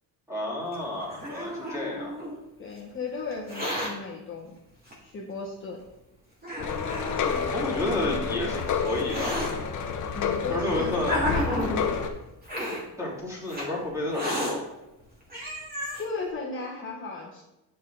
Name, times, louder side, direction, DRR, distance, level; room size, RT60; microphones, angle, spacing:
voice 1, 0.3-2.1 7.5-9.4 10.5-11.2 13.0-14.7, left 1 dB, 10° right, -5 dB, 2.9 m, -30 dB
Hiss, 0.7-2.4 3.3-3.9 4.9-5.0 5.8-5.9 6.4-7.4 8.3-9.5 10.3-11.9 12.4-12.8 13.5-13.7 14.1-14.5 15.0-15.1 15.3-16.0, equal, 25° right, 2.3 m, -32 dB
voice 2, 2.6-4.5 5.0-5.8 10.1-11.9 16.0-17.4, left 4 dB, 30° left, -3 dB, 1.3 m, -36 dB
sound 1, 6.6-12.1, left 6 dB, 50° left, 1.0 m, -29 dB
10.0 x 5.7 x 3.9 m, 0.96 s
cardioid pair, 155°, 40 cm